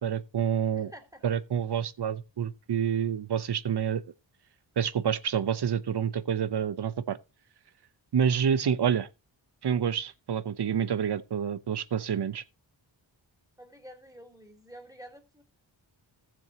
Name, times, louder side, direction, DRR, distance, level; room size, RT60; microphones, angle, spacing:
voice 1, 0.0-0.9 1.2-4.0 4.8-7.2 8.1-9.1 9.6-12.4, right 8 dB, 55° right, 0.8 m, -28 dB
voice 2, 0.7-1.2 13.6-15.4, equal, 5° right, 3.3 m, -49 dB
15.0 x 7.1 x 2.9 m
cardioid pair, 50°, 48 cm